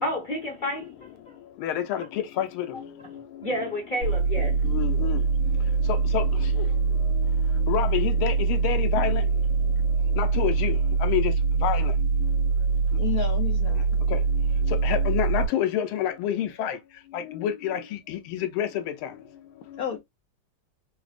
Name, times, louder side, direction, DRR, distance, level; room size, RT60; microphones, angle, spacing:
voice 1, 0.0-0.9 1.3-1.4 3.4-4.5, left 1 dB, 30° left, 0.9 m, -30 dB
sound 1, 4.0-15.5, right 4 dB, 75° right, 2.0 m, -23 dB
voice 2, 4.7-5.2 6.1-6.2 7.7-8.3 8.6-9.2 10.2-10.7 11.0-11.2 11.6-11.8 14.9-16.7 17.4-17.8 18.6-18.7, left 10 dB, 90° left, 1.5 m, -26 dB
voice 3, 12.9-13.9 19.8-20.0, left 9 dB, 70° left, 0.9 m, -31 dB
4.9 x 2.0 x 2.4 m
omnidirectional pair, 2.3 m